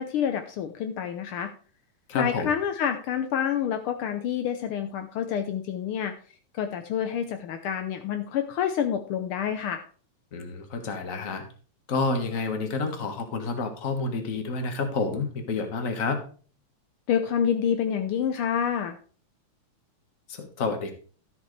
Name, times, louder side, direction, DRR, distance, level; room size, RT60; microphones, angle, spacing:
voice 1, 0.0-1.5 2.1-6.1 6.5-9.8 17.1-19.0, left 8 dB, 85° left, 7 dB, 1.2 m, -28 dB
voice 2, 2.1-2.5 10.3-11.4 11.9-16.2 20.3-20.9, left 3 dB, 40° left, 5 dB, 1.3 m, -29 dB
13.0 x 7.9 x 3.2 m, 0.41 s
omnidirectional pair, 3.3 m